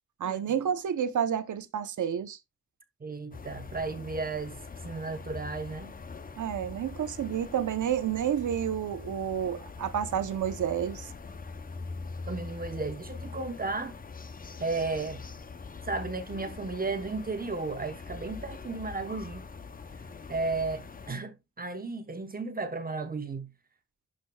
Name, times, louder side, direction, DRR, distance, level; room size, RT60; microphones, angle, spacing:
voice 1, 0.2-2.4 6.4-11.1, right 9 dB, 80° right, 0.8 m, -30 dB
voice 2, 3.0-4.6 4.8-5.9 12.3-13.9 14.6-15.2 15.9-19.4 20.3-23.5, right 3 dB, 30° right, 0.9 m, -34 dB
sound 1, 3.3-21.1, left 4 dB, 30° left, 0.6 m, -43 dB
12.0 x 5.2 x 2.3 m
wide cardioid pair, 160°, 30 cm